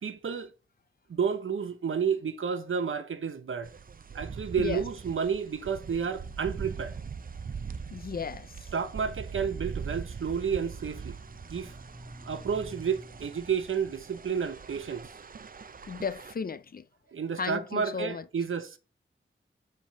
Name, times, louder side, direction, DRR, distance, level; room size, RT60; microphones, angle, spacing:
voice 1, 0.0-0.5 1.1-3.7 4.1-6.9 8.7-11.2 11.5-11.7 12.2-15.1 17.1-18.8, right 6 dB, 75° right, 0.9 m, -31 dB
sound 1, 3.6-16.3, right 6 dB, 45° right, 0.5 m, -41 dB
voice 2, 7.9-8.5 15.9-16.8 17.4-18.2, left 5 dB, 45° left, 0.5 m, -34 dB
sound 2, 11.0-14.0, equal, 5° right, 0.7 m, -51 dB
7.6 x 3.6 x 4.5 m
wide cardioid pair, 80°, 21 cm